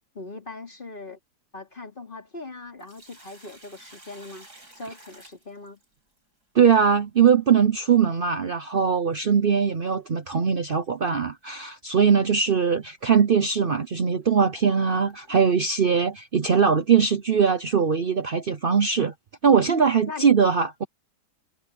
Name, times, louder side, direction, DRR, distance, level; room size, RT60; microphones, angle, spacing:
voice 1, 0.1-1.2 1.5-4.5 4.7-5.8 20.1-20.3, left 3 dB, 25° left, 3.6 m, -40 dB
Sink (filling or washing), 2.6-6.2 8.6-8.7 10.6-10.8 11.3-11.4 12.2-12.3 13.0-13.1 13.7-15.6, right 1 dB, 50° right, 8.8 m, -52 dB
voice 2, 6.5-19.1 19.4-20.8, right 6 dB, 70° right, 0.5 m, -21 dB
omnidirectional pair, 2.2 m